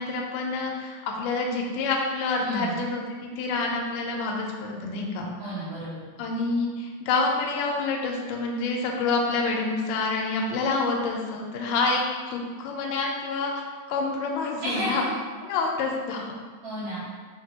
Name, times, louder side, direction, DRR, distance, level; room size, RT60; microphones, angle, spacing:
voice 1, 0.0-5.3 6.2-13.5 13.9-15.0 15.5-16.3, left 3 dB, 80° left, 0 dB, 2.0 m, -27 dB
voice 2, 2.4-2.8 5.4-6.2 14.6-15.1 16.6-17.0, equal, 50° right, -13 dB, 1.9 m, -32 dB
5.9 x 2.6 x 2.8 m, 1.5 s
omnidirectional pair, 4.0 m